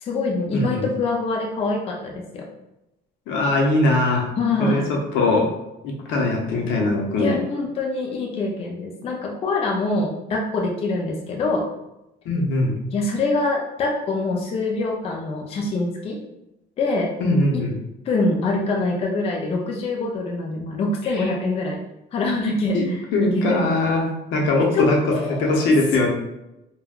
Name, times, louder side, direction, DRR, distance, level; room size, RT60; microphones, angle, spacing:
voice 1, 0.0-2.4 4.4-4.8 7.2-11.7 12.9-16.2 16.8-17.1 17.5-17.6 18.1-21.8 22.1-23.9 24.6-24.8 25.1-25.7, left 2 dB, 30° left, 0 dB, 0.4 m, -25 dB
voice 2, 0.5-0.9 3.3-4.3 4.6-5.5 5.8-7.4 12.2-12.7 17.2-17.7 21.1-21.3 22.7-22.9 23.1-26.1, left 2 dB, 85° left, -1 dB, 0.7 m, -21 dB
3.4 x 2.2 x 2.3 m, 0.91 s
cardioid pair, 165°, 19 cm